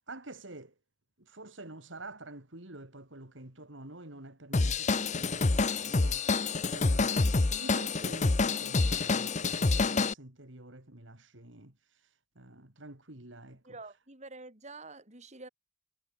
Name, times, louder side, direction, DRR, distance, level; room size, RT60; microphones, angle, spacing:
voice 1, 0.1-0.7 1.2-6.3 6.7-11.7 12.4-13.6, right 2 dB, 80° right, 3.9 m, -48 dB
Drum kit / Drum, 4.5-10.1, left 3 dB, 40° left, 0.8 m, -27 dB
voice 2, 13.6-15.5, right 3 dB, 35° right, 4.8 m, -47 dB
head